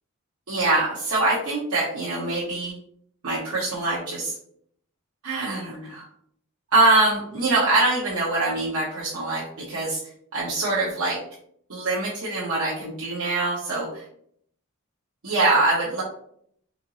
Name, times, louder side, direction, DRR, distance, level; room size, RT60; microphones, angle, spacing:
voice 1, 0.5-2.8 3.2-4.3 5.2-6.0 6.7-10.0 10.3-11.2 11.7-14.0 15.2-16.0, right 2 dB, 90° right, -6 dB, 1.0 m, -24 dB
4.3 x 2.9 x 2.7 m, 0.66 s
head